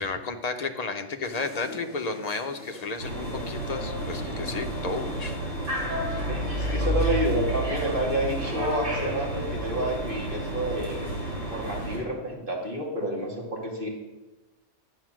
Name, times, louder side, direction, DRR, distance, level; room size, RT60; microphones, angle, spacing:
voice 1, 0.0-5.4 6.6-6.8, left 4 dB, 35° left, 5 dB, 0.9 m, -33 dB
sound 1, 1.2-8.7, left 2 dB, 10° right, 2.9 m, -44 dB
sound 2, 3.0-12.0, right 1 dB, 75° right, 4.3 m, -30 dB
voice 2, 6.3-11.1 11.5-13.9, equal, 45° right, -2 dB, 2.2 m, -29 dB
11.0 x 7.4 x 6.2 m, 1.1 s
omnidirectional pair, 1.3 m